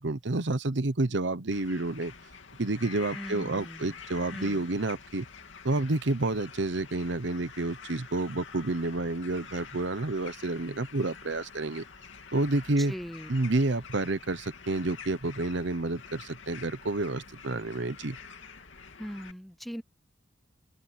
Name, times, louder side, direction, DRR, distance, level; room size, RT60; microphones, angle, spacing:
voice 1, 0.0-2.1 2.6-5.2 5.6-11.8 12.3-12.9 13.3-18.2, right 2 dB, 70° right, 1.0 m, -29 dB
sound 1, 1.5-19.3, left 6 dB, 85° left, 2.5 m, -47 dB
voice 2, 3.1-4.0 4.3-4.7 12.8-13.3 19.0-19.8, equal, ahead, 0.6 m, -40 dB
open air
head